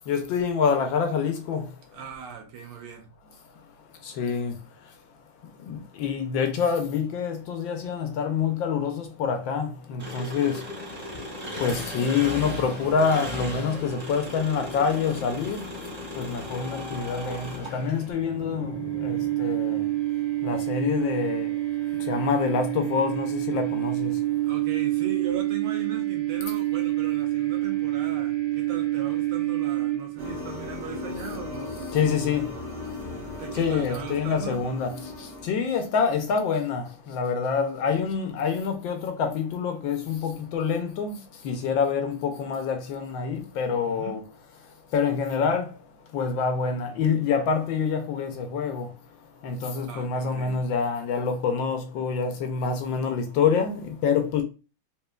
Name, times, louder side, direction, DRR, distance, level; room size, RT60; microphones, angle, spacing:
voice 1, 0.1-1.7 4.0-4.6 5.6-11.1 11.6-15.7 16.2-19.9 20.4-21.5 22.0-24.2 31.9-32.5 33.5-44.3 44.9-45.7 46.1-48.9 49.4-54.4, left 6 dB, 75° left, 1.3 m, -26 dB
voice 2, 1.9-3.1 24.4-31.8 33.4-34.7 43.8-44.2 49.8-50.6, right 6 dB, 80° right, 1.8 m, -39 dB
Engine, 10.0-18.1, left 1 dB, 5° right, 1.8 m, -36 dB
sound 1, 16.4-30.4, right 15 dB, 25° right, 0.9 m, -28 dB
sound 2, 30.2-35.4, left 2 dB, 55° right, 1.8 m, -37 dB
4.1 x 3.7 x 2.2 m
omnidirectional pair, 2.4 m